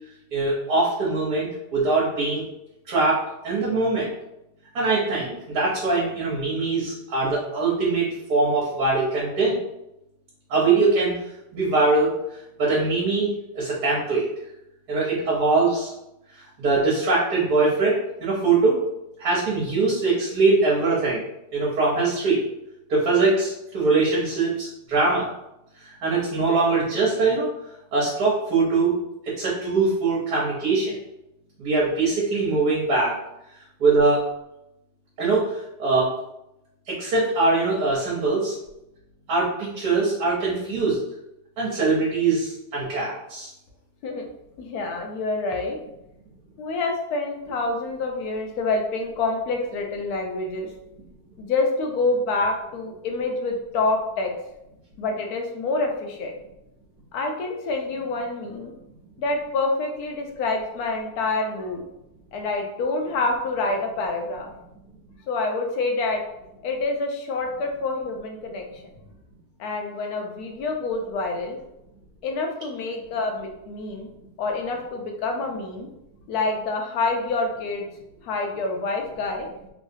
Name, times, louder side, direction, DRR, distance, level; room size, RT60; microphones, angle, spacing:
voice 1, 0.3-2.4 2.9-4.1 4.7-9.5 10.5-11.1 11.5-12.1 12.6-13.3 13.5-14.3 14.9-15.9 16.6-18.8 19.2-21.2 21.5-22.4 22.9-25.3 26.0-27.5 27.9-28.9 29.2-31.0 31.6-33.1 33.8-34.2 35.2-35.5 35.8-36.1 36.9-38.5 39.3-41.0 41.6-43.5, right 3 dB, 70° right, -6 dB, 1.4 m, -22 dB
voice 2, 44.6-45.8 46.6-50.7 51.4-54.3 55.0-56.3 57.1-58.7 59.2-61.8 62.3-64.5 65.3-66.2 66.6-68.6 69.6-71.6 72.2-74.1 74.4-75.9 76.3-77.9 78.2-79.5, left 3 dB, 75° left, 2 dB, 1.1 m, -27 dB
3.2 x 3.1 x 2.6 m, 0.85 s
omnidirectional pair, 1.7 m